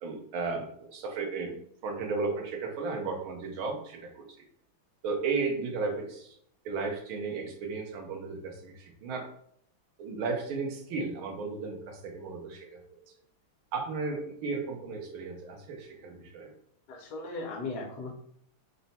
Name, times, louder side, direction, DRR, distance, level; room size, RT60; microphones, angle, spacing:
voice 1, 0.0-1.6 1.8-4.2 5.0-6.4 6.6-9.3 10.0-13.0 13.7-16.5, right 4 dB, 85° right, 3 dB, 1.6 m, -34 dB
voice 2, 16.9-18.1, left 3 dB, 65° left, 0 dB, 1.2 m, -37 dB
3.9 x 2.2 x 4.0 m, 0.67 s
omnidirectional pair, 2.2 m